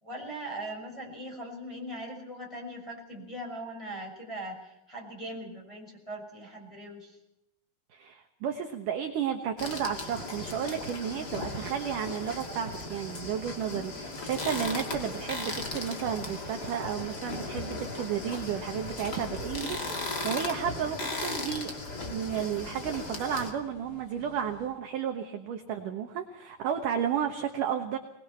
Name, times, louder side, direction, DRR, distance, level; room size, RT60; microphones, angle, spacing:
voice 1, 0.0-7.2, right 1 dB, 5° left, -2 dB, 5.8 m, -40 dB
voice 2, 7.9-21.7 22.1-28.0, right 8 dB, 65° right, 5 dB, 2.1 m, -32 dB
sound 1, 9.6-23.5, left 2 dB, 30° left, 2.1 m, -37 dB
sound 2, 11.1-24.7, left 2 dB, 90° left, 10.5 m, -55 dB
24.5 x 20.5 x 5.8 m, 0.85 s
omnidirectional pair, 5.4 m